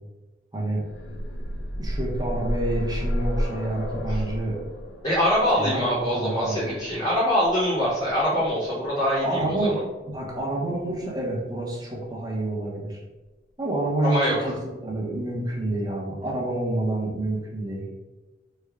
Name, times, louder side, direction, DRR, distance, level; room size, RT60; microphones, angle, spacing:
sound 1, 0.7-8.5 9.6-9.7 10.1-10.2, equal, 75° left, 0.4 m, -31 dB
voice 1, 1.8-4.6 5.6-6.7 9.2-9.8 10.1-13.0 13.6-17.9, right 1 dB, 20° right, -4 dB, 0.7 m, -28 dB
voice 2, 5.0-9.8 14.0-14.5, equal, 35° left, -9 dB, 0.9 m, -24 dB
3.2 x 2.2 x 3.5 m, 1.2 s
head